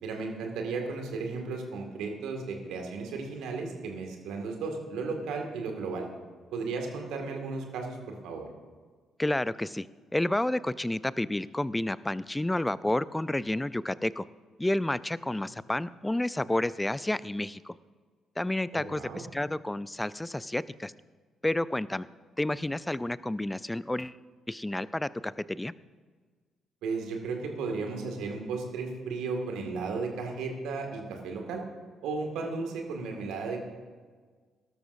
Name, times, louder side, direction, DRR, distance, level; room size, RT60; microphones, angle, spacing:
voice 1, 0.0-6.1 6.5-8.5 18.7-19.2 26.8-31.6 32.0-33.6, right 4 dB, 70° right, 3 dB, 2.0 m, -34 dB
voice 2, 9.2-9.9 10.1-14.3 14.6-17.7 18.4-20.9 21.4-22.1 22.4-24.2 24.5-25.7, left 1 dB, 10° left, 18 dB, 0.4 m, -30 dB
18.0 x 13.0 x 2.7 m, 1.5 s
hypercardioid pair, 45°, 0 cm